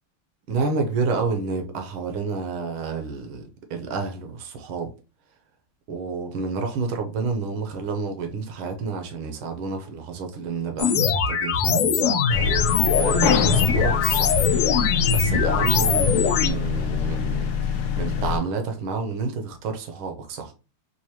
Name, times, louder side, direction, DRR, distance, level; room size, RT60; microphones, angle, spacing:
voice 1, 0.5-4.9 5.9-12.2 12.6-14.4 15.1-20.5, right 4 dB, 75° right, 1.6 m, -29 dB
sound 1, 10.8-16.5, left 6 dB, 90° left, 1.6 m, -21 dB
sound 2, 12.3-18.4, left 7 dB, 75° left, 0.9 m, -25 dB
4.7 x 2.5 x 2.9 m
omnidirectional pair, 2.4 m